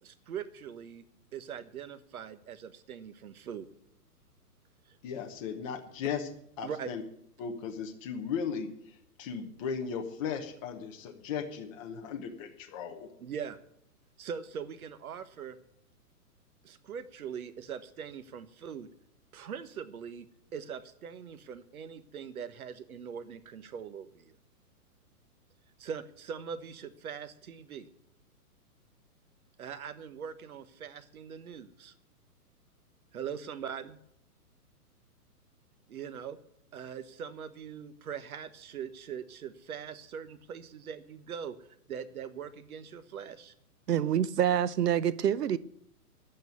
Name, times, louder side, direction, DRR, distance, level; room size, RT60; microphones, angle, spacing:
voice 1, 0.0-1.0 1.3-3.7 4.9-5.0 6.6-6.9 13.2-13.6 14.2-15.6 16.6-18.9 19.3-20.3 20.5-24.4 25.8-27.9 29.6-31.9 33.1-34.0 35.9-36.4 36.7-41.6 41.9-43.5, right 7 dB, 65° right, 1.4 m, -41 dB
voice 2, 5.0-6.3 6.6-7.0 7.4-13.1, left 7 dB, 20° left, 0.9 m, -36 dB
voice 3, 43.9-45.6, right 10 dB, 80° right, 0.9 m, -26 dB
10.5 x 8.9 x 9.4 m
hypercardioid pair, 160°, 47 cm